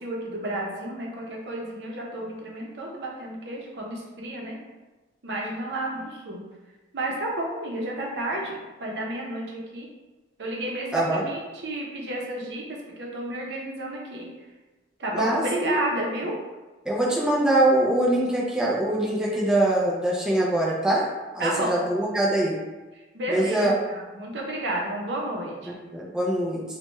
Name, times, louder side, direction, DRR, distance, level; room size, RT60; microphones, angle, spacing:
voice 1, 0.0-4.6 5.2-6.4 6.9-9.9 10.4-14.3 15.0-16.3 21.4-21.8 22.9-25.8, right 1 dB, 70° right, -2 dB, 0.7 m, -31 dB
voice 2, 10.9-11.3 15.1-15.8 16.9-21.1 21.3-22.6 23.3-23.7 25.9-26.6, right 1 dB, 5° right, -5 dB, 0.5 m, -23 dB
3.2 x 2.2 x 3.1 m, 1.2 s
head